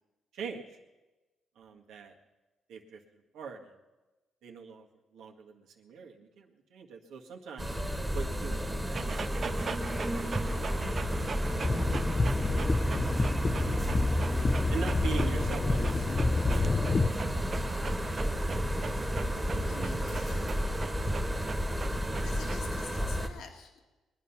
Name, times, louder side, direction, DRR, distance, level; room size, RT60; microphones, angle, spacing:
voice 1, 0.3-0.8 1.6-2.1 2.7-3.0 3.3-3.8 4.4-4.9 5.1-7.8 8.1-9.1 11.5-12.7 14.7-16.2 16.5-16.9, right 5 dB, 80° right, 1 dB, 1.8 m, -43 dB
sound 1, 7.6-23.3, equal, 5° right, 1.5 m, -32 dB
Dog, 8.9-22.8, right 5 dB, 45° right, 0.5 m, -42 dB
sound 2, 11.6-17.1, left 3 dB, 30° left, 0.6 m, -28 dB
voice 2, 19.7-20.5 22.2-23.8, left 6 dB, 75° left, 3 dB, 2.0 m, -48 dB
21.0 x 10.0 x 5.9 m, 1.2 s
cardioid pair, 90°, 0 cm